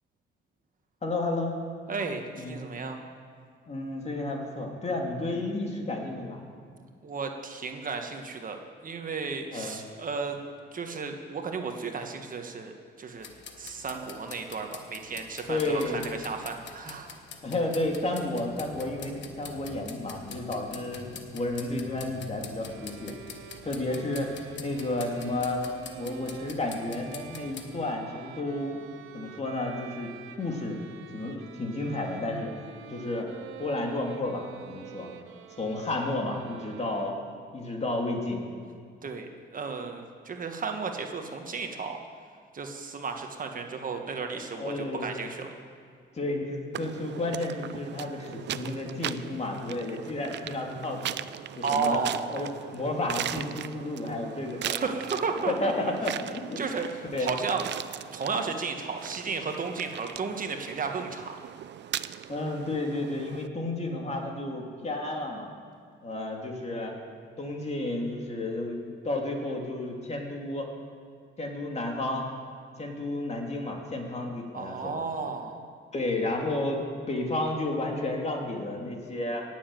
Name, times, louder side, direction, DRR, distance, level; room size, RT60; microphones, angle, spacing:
voice 1, 1.0-1.5 2.3-2.7 3.7-6.4 9.5-9.8 15.5-16.1 17.4-21.1 21.3-23.1 23.6-24.3 24.6-25.6 26.0-28.8 29.1-30.1 30.4-30.8 31.1-32.5 32.9-33.3 33.6-35.1 35.6-37.2 37.5-38.4 44.3-45.1 46.1-51.2 51.6-52.0 52.3-54.9 55.5-56.6 57.1-57.3 62.3-65.5 66.0-66.9 67.4-68.8 69.0-70.7 71.4-72.2 72.8-74.9 75.9-76.8 77.1-79.4, left 2 dB, 35° left, 1 dB, 2.6 m, -32 dB
voice 2, 1.9-3.0 7.0-10.4 10.7-12.7 13.0-13.3 13.6-17.2 39.0-42.0 42.5-45.5 51.6-52.5 54.7-55.7 56.6-57.6 58.1-61.3 74.5-75.7, right 5 dB, 45° right, 4 dB, 1.5 m, -33 dB
sound 1, 13.2-27.7, left 5 dB, 65° left, 1.4 m, -45 dB
sound 2, 22.6-37.6, right 10 dB, 90° right, 0.9 m, -47 dB
sound 3, 46.7-63.5, right 11 dB, 65° right, 0.5 m, -39 dB
18.5 x 7.4 x 7.6 m, 2.1 s
cardioid pair, 90°, 20 cm